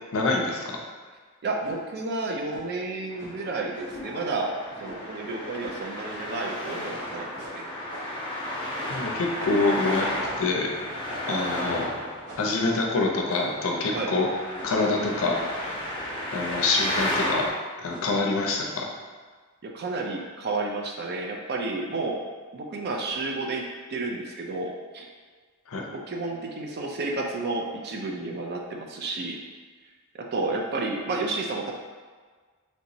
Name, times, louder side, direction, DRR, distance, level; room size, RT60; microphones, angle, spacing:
voice 1, 0.1-0.8 8.9-10.1 10.4-10.7 11.3-11.9 12.4-14.3 14.6-15.4 16.3-17.5 17.8-18.9 25.7-25.8, left 3 dB, 65° left, 0 dB, 0.5 m, -25 dB
voice 2, 1.4-4.5 4.8-7.6 13.9-14.1 19.6-22.2 22.5-23.6 23.9-25.1 25.9-29.4 30.1-31.7, right 3 dB, 45° right, 1 dB, 0.4 m, -31 dB
sound 1, 1.6-1.8 2.5-2.7 3.2-3.5 3.9-4.1 4.8-5.1 5.6-5.8 6.1-6.2 6.6-7.0 7.4-8.2 8.7-9.1 9.4-9.6 10.2-10.5 11.1-11.5 12.2-12.6 13.3-13.7 14.5-14.9 15.3-15.6 16.4-16.7 17.1-17.5 17.9-18.2, right 1 dB, 75° right, 0.9 m, -44 dB
Traffic noise roadway noise, 3.1-17.5, left 1 dB, 25° left, 0.6 m, -33 dB
3.3 x 2.9 x 2.7 m, 1.5 s
head